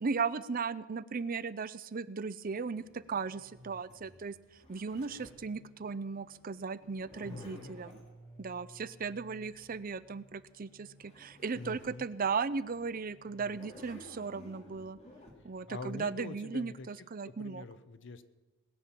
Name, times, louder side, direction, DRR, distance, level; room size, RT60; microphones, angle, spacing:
voice 1, 0.0-4.4 4.7-8.0 8.4-15.0 15.4-17.7, right 5 dB, 45° right, 16 dB, 0.5 m, -36 dB
sound 1, 2.4-16.2, equal, 10° left, 6.7 m, -59 dB
Zipper (clothing), 2.8-5.5 6.8-8.1 10.7-10.8 11.0-12.0 12.5-12.6 13.3-15.3, left 1 dB, 30° left, 2.5 m, -54 dB
voice 2, 7.2-7.7 11.5-12.1 15.7-16.9 17.3-18.2, left 3 dB, 60° left, 12 dB, 0.8 m, -44 dB
20.0 x 8.6 x 7.4 m, 1.2 s
head